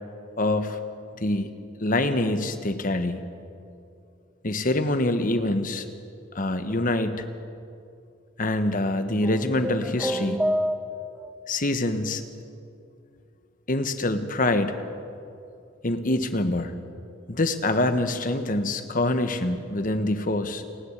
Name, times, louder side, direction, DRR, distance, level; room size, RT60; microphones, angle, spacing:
voice 1, 0.4-0.8 1.2-1.5 1.8-3.2 4.4-5.8 6.3-7.2 8.4-10.4 11.5-12.2 13.7-14.7 15.8-16.7 17.3-20.6, left 2 dB, 45° left, 9 dB, 1.3 m, -25 dB
sound 1, 9.2-11.3, equal, 5° right, 0.9 m, -28 dB
28.5 x 10.5 x 9.8 m, 2.5 s
head